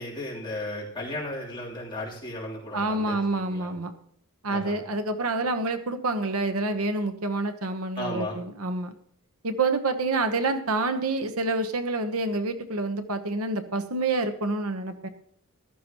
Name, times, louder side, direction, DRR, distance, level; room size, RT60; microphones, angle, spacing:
voice 1, 0.0-3.7 4.5-4.8 8.0-8.4, left 1 dB, 20° left, -5 dB, 3.4 m, -35 dB
voice 2, 2.7-3.9 4.4-8.9 9.4-15.1, right 2 dB, 85° right, 8 dB, 1.1 m, -27 dB
14.5 x 13.0 x 3.0 m, 0.65 s
head